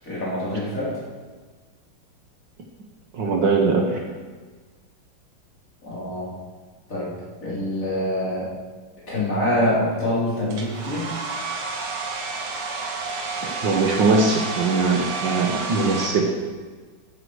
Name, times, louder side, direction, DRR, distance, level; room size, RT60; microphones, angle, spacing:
voice 1, 0.0-1.0 5.8-6.4 6.9-8.6 9.1-11.1, left 1 dB, 35° left, -7 dB, 4.4 m, -25 dB
voice 2, 3.1-4.0 13.4-16.3, right 3 dB, 60° right, 2 dB, 1.7 m, -21 dB
Domestic sounds home sounds, 10.5-16.1, right 3 dB, 80° right, 2.4 m, -30 dB
13.5 x 10.5 x 4.9 m, 1.4 s
omnidirectional pair, 2.4 m